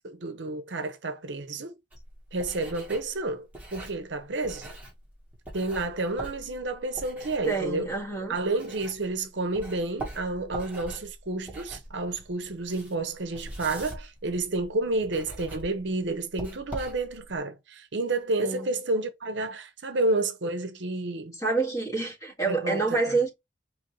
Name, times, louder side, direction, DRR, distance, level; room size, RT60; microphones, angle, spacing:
voice 1, 0.0-1.8 2.3-4.7 5.5-7.9 8.3-21.4 22.5-23.2, right 2 dB, 65° right, 0.8 m, -30 dB
sound 1, 1.9-9.2 9.5-17.4, right 1 dB, 10° right, 1.4 m, -43 dB
voice 2, 7.5-8.4 18.4-18.7 21.4-23.3, right 3 dB, 20° left, 1.8 m, -27 dB
5.1 x 3.1 x 3.1 m
head